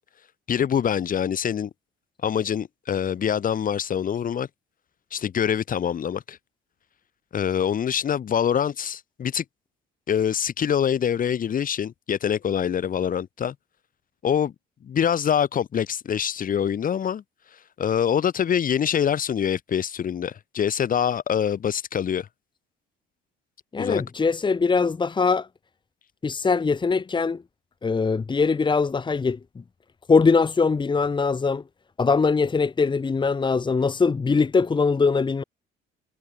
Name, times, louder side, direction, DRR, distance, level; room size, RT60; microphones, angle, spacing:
voice 1, 0.5-1.7 2.2-4.5 5.1-6.4 7.3-9.4 10.1-13.6 14.2-14.5 14.8-17.2 17.8-22.3 23.8-24.0, left 8 dB, 45° left, 3.5 m, -25 dB
voice 2, 23.7-25.5 26.2-27.4 27.8-29.4 30.1-31.6 32.0-35.4, left 4 dB, 25° left, 2.0 m, -22 dB
cardioid pair, 100°, 19 cm